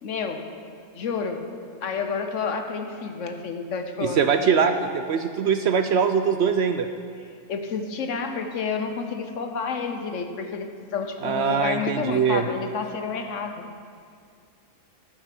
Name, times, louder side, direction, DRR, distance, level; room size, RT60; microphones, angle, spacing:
voice 1, 0.0-0.5 0.9-1.5 1.8-4.3 7.5-13.6, left 5 dB, 70° left, 6 dB, 1.2 m, -30 dB
voice 2, 4.0-6.9 11.2-12.4, right 6 dB, 65° right, 8 dB, 0.8 m, -22 dB
12.0 x 8.8 x 6.0 m, 2.3 s
omnidirectional pair, 1.3 m